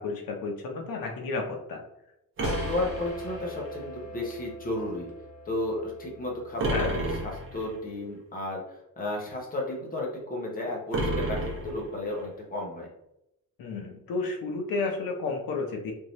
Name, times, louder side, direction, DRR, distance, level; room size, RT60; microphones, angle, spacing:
voice 1, 0.0-1.8 6.7-7.0 13.6-15.9, left 3 dB, 85° left, 2 dB, 0.8 m, -32 dB
sound 1, 2.4-7.9, left 1 dB, 55° left, 0.9 m, -43 dB
voice 2, 2.4-5.1 5.5-12.9, left 1 dB, 25° left, -2 dB, 0.8 m, -33 dB
sound 2, 2.4-3.8 6.6-7.7 10.9-12.2, right 1 dB, 35° right, 0.8 m, -31 dB
3.6 x 2.7 x 3.0 m, 0.85 s
wide cardioid pair, 175°, 34 cm